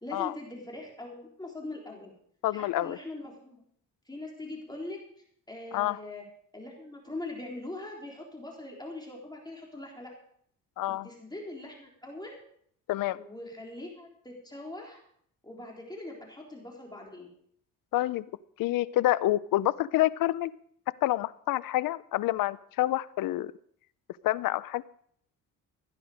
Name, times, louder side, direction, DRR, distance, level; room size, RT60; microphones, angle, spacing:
voice 1, 0.0-2.1 2.5-3.6 4.1-5.0 5.5-6.2 6.5-10.1 10.9-12.4 13.1-15.0 15.4-17.3, left 2 dB, 10° left, -1 dB, 3.8 m, -42 dB
voice 2, 2.4-3.0 5.7-6.0 10.8-11.1 12.9-13.2 17.9-18.2 18.6-20.5 21.0-23.5 24.2-24.8, left 15 dB, 80° left, 18 dB, 0.6 m, -27 dB
16.5 x 10.5 x 5.0 m, 0.65 s
cardioid pair, 95°, 33 cm